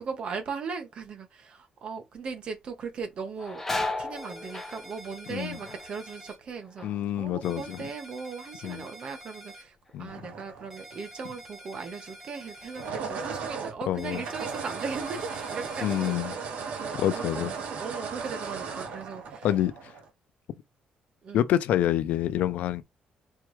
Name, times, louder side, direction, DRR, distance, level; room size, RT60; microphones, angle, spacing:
voice 1, 0.0-3.6 4.0-6.9 7.2-19.5 21.2-21.4, right 5 dB, 40° right, 1.2 m, -38 dB
sound 1, 2.2-2.5 2.9-8.5 8.8-9.4 9.9-12.8 13.1-13.2 14.2-14.4 14.8-16.0 16.4-16.6 17.2-17.8 18.1-19.3, left 2 dB, 10° left, 1.1 m, -39 dB
sound 2, 4.2-6.4 7.4-9.6 10.7-12.9 14.0-16.2, right 1 dB, 10° right, 1.5 m, -47 dB
voice 2, 6.8-7.8 8.6-8.8 9.9-10.1 13.9-14.2 15.8-16.3 17.0-17.5 19.4-19.9 21.3-22.8, left 12 dB, 75° left, 0.5 m, -27 dB
sound 3, 10.1-11.1 12.6-20.1, right 5 dB, 70° right, 1.5 m, -36 dB
4.6 x 3.4 x 3.1 m
cardioid pair, 170°, 3 cm